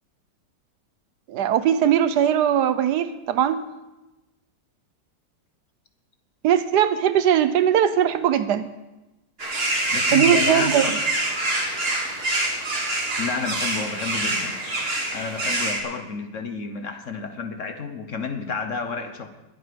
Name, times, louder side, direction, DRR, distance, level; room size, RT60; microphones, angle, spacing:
voice 1, 1.3-3.6 6.4-8.7 10.1-10.9, right 9 dB, 75° right, 13 dB, 1.2 m, -20 dB
sound 1, 9.4-15.8, right 1 dB, 35° right, 2.3 m, -25 dB
voice 2, 9.9-10.9 13.2-14.5 15.1-19.3, left 5 dB, 50° left, 7 dB, 1.3 m, -30 dB
21.0 x 7.8 x 5.2 m, 1.0 s
omnidirectional pair, 1.9 m